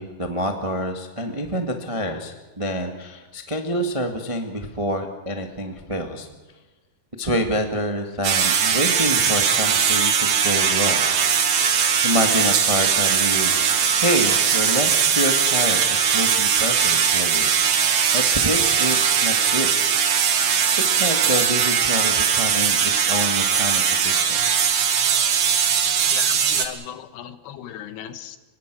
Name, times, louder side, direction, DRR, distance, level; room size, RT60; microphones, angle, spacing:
voice 1, 0.0-6.3 7.2-11.1 11.8-13.6 14.0-17.5 18.1-19.0 19.2-19.7 20.5-24.4, equal, 25° right, 5 dB, 0.7 m, -27 dB
sound 1, 8.2-26.7, right 7 dB, 55° right, 2.7 m, -20 dB
voice 2, 26.1-28.4, left 10 dB, 85° left, 11 dB, 3.4 m, -36 dB
25.5 x 21.5 x 6.3 m, 1.2 s
omnidirectional pair, 4.6 m